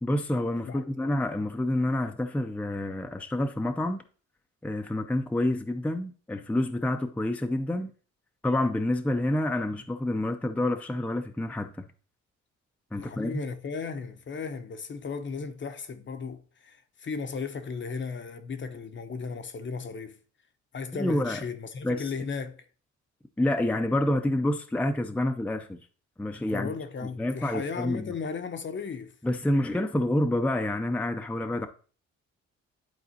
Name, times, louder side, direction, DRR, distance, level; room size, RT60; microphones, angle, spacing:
voice 1, 0.0-4.0 4.6-7.9 8.4-11.9 12.9-13.4 21.0-21.4 21.8-22.1 23.4-25.8 26.2-26.7 27.0-28.1 29.2-31.7, left 1 dB, 5° left, 0.5 m, -28 dB
voice 2, 0.7-1.1 12.9-20.2 20.7-22.6 26.5-29.1, left 5 dB, 40° left, 0.8 m, -36 dB
10.5 x 4.1 x 2.8 m
cardioid pair, 90°, 30 cm